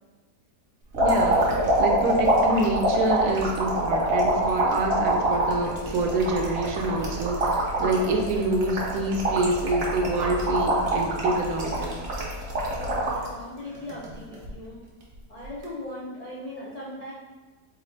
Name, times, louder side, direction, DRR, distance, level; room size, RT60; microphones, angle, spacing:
sound 1, 0.9-13.3 13.7-14.5 15.5-15.6, right 1 dB, 50° right, 0.8 m, -25 dB
voice 1, 1.0-1.5 1.8-11.9, right 2 dB, 75° right, 2 dB, 1.0 m, -26 dB
voice 2, 12.7-14.8 15.3-17.1, left 1 dB, 80° left, -6 dB, 0.3 m, -38 dB
4.1 x 2.4 x 3.2 m, 1.3 s
omnidirectional pair, 1.7 m